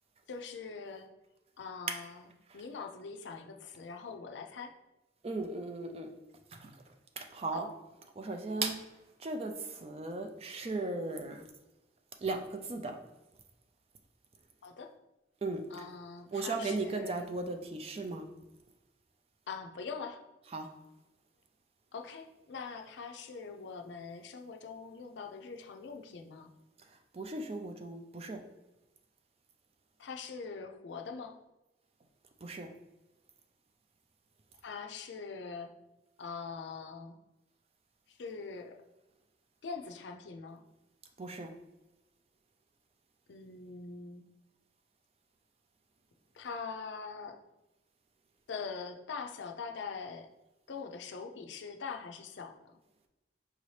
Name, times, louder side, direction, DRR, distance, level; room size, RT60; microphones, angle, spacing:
voice 1, 0.3-1.1 1.6-2.3 2.5-4.7 7.5-7.7 14.6-14.9 15.7-17.3 19.5-20.2 21.9-26.5 30.0-31.4 34.6-35.7 36.2-37.2 38.1-38.8 39.6-40.6 43.3-44.3 46.3-47.4 48.5-50.3 50.7-52.7, left 5 dB, 75° left, 5 dB, 0.4 m, -43 dB
voice 2, 5.2-6.1 6.5-6.8 7.2-7.7 8.2-8.8 9.2-11.4 12.2-13.0 15.4-15.6 16.3-18.2 20.5-20.7 27.1-28.4 32.4-32.7 41.2-41.5, right 3 dB, 30° right, 5 dB, 0.4 m, -36 dB
4.9 x 2.7 x 3.2 m, 1.0 s
head